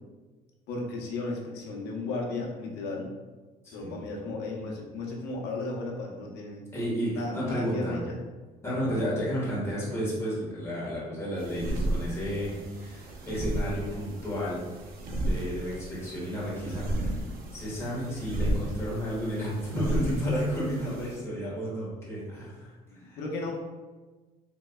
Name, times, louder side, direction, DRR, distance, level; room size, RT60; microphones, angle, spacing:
voice 1, 0.7-3.1 3.7-6.6 7.1-8.2 22.9-23.5, left 2 dB, 85° left, 0 dB, 0.8 m, -34 dB
voice 2, 6.7-8.0 8.6-14.6 15.2-17.2 17.5-22.7 23.0-23.2, equal, 15° left, -7 dB, 1.5 m, -32 dB
sound 1, 11.4-21.2, right 1 dB, 60° right, 0.7 m, -34 dB
3.8 x 3.1 x 2.2 m, 1.2 s
cardioid pair, 110°, 17 cm